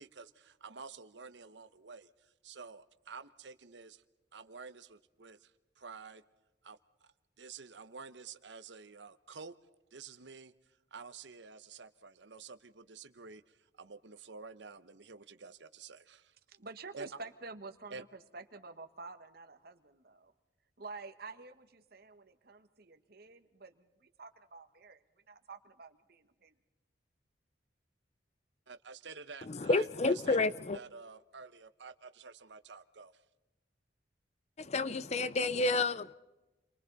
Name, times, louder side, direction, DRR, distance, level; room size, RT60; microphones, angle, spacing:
voice 1, 0.0-4.0 4.3-5.5 5.8-6.2 6.6-9.6 9.9-10.5 10.9-16.3 16.9-17.2 17.9-18.0 28.7-30.5 30.7-33.2, right 4 dB, 75° right, 0.9 m, -50 dB
voice 2, 16.5-20.3 20.8-25.0 25.3-26.5, right 3 dB, 55° right, 1.5 m, -49 dB
voice 3, 29.5-30.8 34.6-36.1, left 3 dB, 40° left, 0.6 m, -30 dB
29.5 x 23.5 x 4.1 m
head